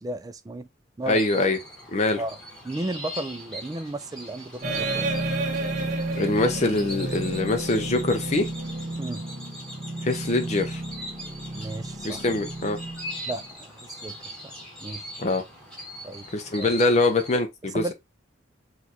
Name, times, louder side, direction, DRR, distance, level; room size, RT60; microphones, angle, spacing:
voice 1, 0.0-0.7 1.0-1.2 2.2-2.4 2.6-5.1 9.0-9.2 11.5-12.2 13.3-14.2 14.4-14.5 14.8-15.0 16.0-16.3 16.6-16.8 17.7-17.9, right 2 dB, 20° right, 0.3 m, -34 dB
sound 1, 1.0-17.4, equal, 5° left, 1.5 m, -41 dB
voice 2, 1.1-1.6 1.9-2.2 6.2-8.5 10.0-10.8 12.0-12.8 15.2-15.4 16.3-17.9, left 2 dB, 35° left, 0.5 m, -24 dB
sound 2, 4.6-13.5, right 2 dB, 40° right, 1.0 m, -31 dB
6.2 x 2.4 x 2.7 m
head